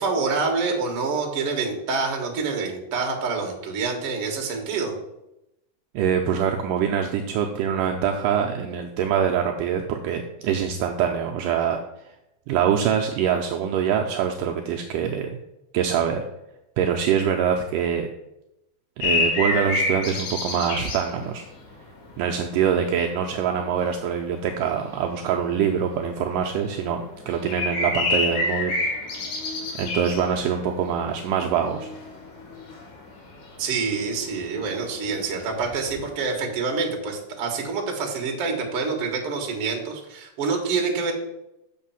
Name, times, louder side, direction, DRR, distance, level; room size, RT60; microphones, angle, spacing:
voice 1, 0.0-5.0 33.6-41.1, right 4 dB, 55° right, 2 dB, 1.8 m, -27 dB
voice 2, 5.9-11.8 12.5-15.4 15.7-16.2 16.8-18.1 19.0-21.4 22.2-28.7 29.8-31.9, right 8 dB, 85° right, 2 dB, 1.9 m, -24 dB
sound 1, 19.0-22.6 22.9-36.3, left 2 dB, 60° left, 2.7 m, -29 dB
6.7 x 5.5 x 5.7 m, 0.88 s
omnidirectional pair, 4.4 m